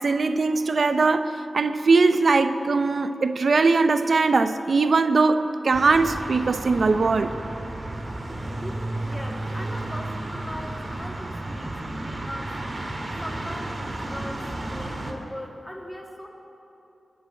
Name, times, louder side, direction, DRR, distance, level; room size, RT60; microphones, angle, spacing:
voice 1, 0.0-7.3, right 3 dB, 70° right, 10 dB, 0.7 m, -21 dB
sound 1, 5.7-15.1, right 1 dB, 45° right, 2.0 m, -33 dB
voice 2, 8.6-12.5 13.2-16.3, equal, 5° left, 0 dB, 2.4 m, -39 dB
20.5 x 6.8 x 8.9 m, 3.0 s
cardioid pair, 55°, 0 cm